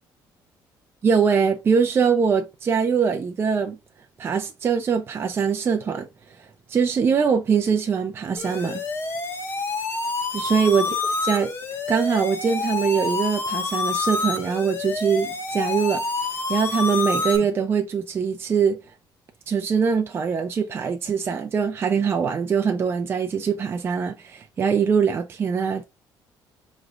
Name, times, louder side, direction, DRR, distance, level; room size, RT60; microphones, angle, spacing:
voice 1, 1.0-3.8 4.2-6.1 6.4-8.8 10.3-10.9 11.2-11.5 11.9-16.0 16.5-18.8 19.5-25.9, right 6 dB, 30° right, 0.4 m, -22 dB
sound 1, 8.4-17.4, left 4 dB, 30° left, 0.8 m, -27 dB
5.2 x 3.0 x 2.5 m
cardioid pair, 165°, 8 cm